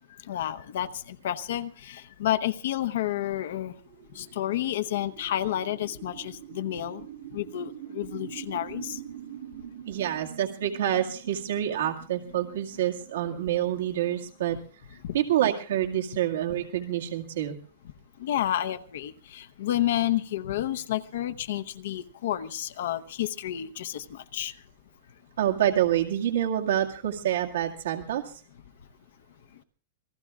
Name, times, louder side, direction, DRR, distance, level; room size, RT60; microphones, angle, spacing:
voice 1, 0.3-3.7 4.2-7.0 7.3-9.0 15.0-15.2 18.2-24.5, left 12 dB, 65° left, 10 dB, 0.9 m, -30 dB
sound 1, 3.1-15.2, right 10 dB, 45° right, 1.4 m, -45 dB
voice 2, 9.9-14.6 15.1-17.6 25.4-28.3, right 11 dB, 80° right, 1 dB, 2.0 m, -27 dB
27.5 x 19.5 x 2.4 m, 0.40 s
supercardioid pair, 165°, 0 cm